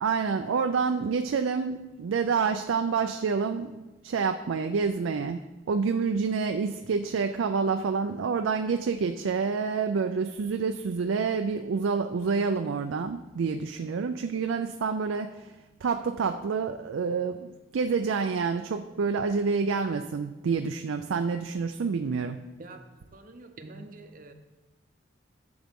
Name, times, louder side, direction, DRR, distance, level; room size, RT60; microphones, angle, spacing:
voice 1, 0.0-15.5 15.8-22.4, right 5 dB, 90° right, 6 dB, 0.4 m, -28 dB
voice 2, 23.1-24.3, right 2 dB, 45° right, 6 dB, 0.7 m, -45 dB
11.0 x 7.0 x 3.6 m, 1.1 s
head